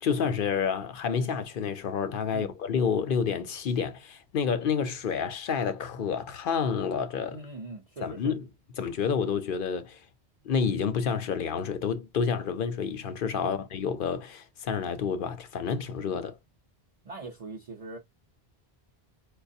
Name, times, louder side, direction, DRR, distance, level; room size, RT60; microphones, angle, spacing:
voice 1, 0.0-7.4 8.0-8.5 8.8-10.0 10.4-16.4, left 6 dB, 60° left, 0.7 m, -29 dB
voice 2, 7.3-8.3 13.4-13.5 17.0-18.0, right 3 dB, 40° right, 0.6 m, -41 dB
4.8 x 2.2 x 2.6 m
omnidirectional pair, 1.1 m